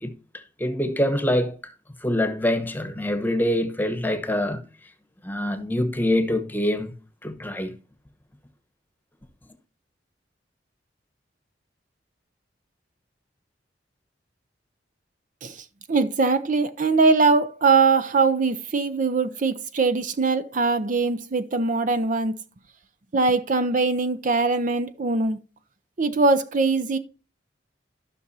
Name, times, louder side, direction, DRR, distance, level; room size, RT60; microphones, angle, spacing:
voice 1, 0.0-1.6 2.0-4.7 5.2-6.9 7.2-7.8, left 1 dB, 10° left, 1.1 m, -25 dB
voice 2, 15.4-22.4 23.1-25.4 26.0-27.0, right 4 dB, 45° right, 0.6 m, -22 dB
14.0 x 6.0 x 2.7 m
head